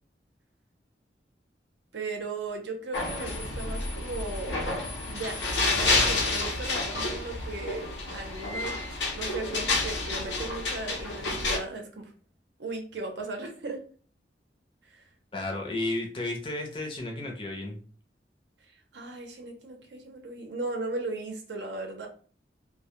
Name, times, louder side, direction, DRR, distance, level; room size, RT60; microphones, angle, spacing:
voice 1, 1.9-4.6 5.1-8.8 9.1-12.1 12.6-13.8 14.8-15.1 18.9-22.1, right 3 dB, 85° right, 3 dB, 0.6 m, -37 dB
sound 1, 2.9-11.6, left 2 dB, 85° left, 0.6 m, -29 dB
voice 2, 15.3-17.8, left 2 dB, 30° left, 1 dB, 0.5 m, -33 dB
2.1 x 2.0 x 2.8 m, 0.41 s
head